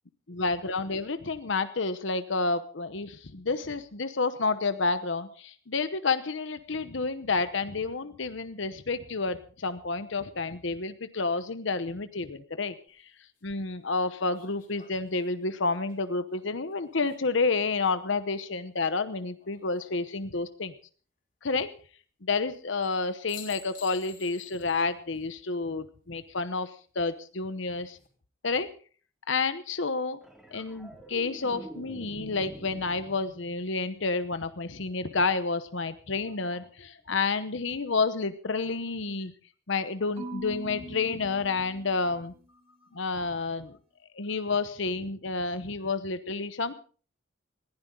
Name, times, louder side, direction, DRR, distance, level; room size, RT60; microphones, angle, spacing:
voice 1, 0.3-12.7 13.4-20.7 21.4-21.7 22.2-28.0 28.4-28.7 29.3-30.2 30.5-39.3 39.7-42.3 42.9-43.8 44.2-46.7, left 4 dB, 70° left, 11 dB, 0.9 m, -30 dB
sound 1, 12.9-13.0 14.3-17.6 19.4-20.1 22.8-23.0 23.3-24.8 25.2-25.3 27.6-28.1, left 8 dB, 40° left, 3.7 m, -51 dB
sound 2, 30.2-34.7 37.1-37.3, equal, 5° right, 2.7 m, -46 dB
Marimba xylophone / Wood, 40.2-42.4, equal, 30° right, 4.1 m, -42 dB
20.5 x 15.5 x 3.8 m, 0.41 s
head